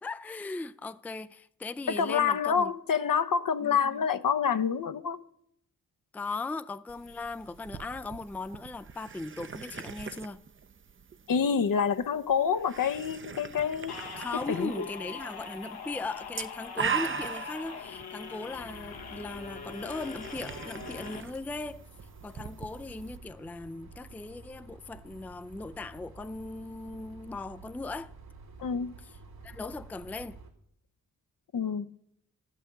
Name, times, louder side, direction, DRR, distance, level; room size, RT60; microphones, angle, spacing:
voice 1, 0.0-2.7 3.6-4.0 6.1-10.4 14.2-21.8 22.2-28.1 29.4-30.4, left 3 dB, 5° left, 0.4 m, -38 dB
voice 2, 1.9-5.2 11.3-14.0 14.3-14.9 28.6-29.0 31.5-32.0, left 7 dB, 60° left, 0.8 m, -27 dB
sound 1, 6.9-23.2, right 6 dB, 35° right, 0.7 m, -41 dB
sound 2, 13.9-21.2, left 6 dB, 85° left, 1.4 m, -42 dB
sound 3, 18.5-30.5, right 3 dB, 80° right, 2.6 m, -51 dB
12.0 x 5.7 x 8.4 m
cardioid pair, 55°, 37 cm